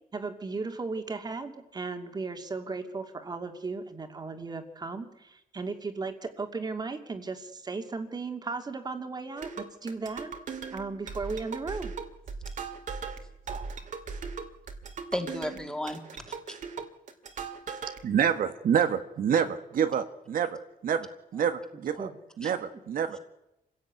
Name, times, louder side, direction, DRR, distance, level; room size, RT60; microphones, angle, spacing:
voice 1, 0.1-10.3 10.7-11.9 22.0-22.1, right 4 dB, 25° right, 6 dB, 2.5 m, -36 dB
sound 1, 9.4-18.0, right 5 dB, 55° right, 2.5 m, -39 dB
voice 2, 15.1-16.0 16.3-16.6 22.4-22.5, left 1 dB, 5° left, 5 dB, 2.5 m, -34 dB
voice 3, 18.0-22.1 22.4-23.2, right 8 dB, 70° right, 9 dB, 1.6 m, -27 dB
28.0 x 16.5 x 9.5 m, 0.89 s
wide cardioid pair, 170°, 15 cm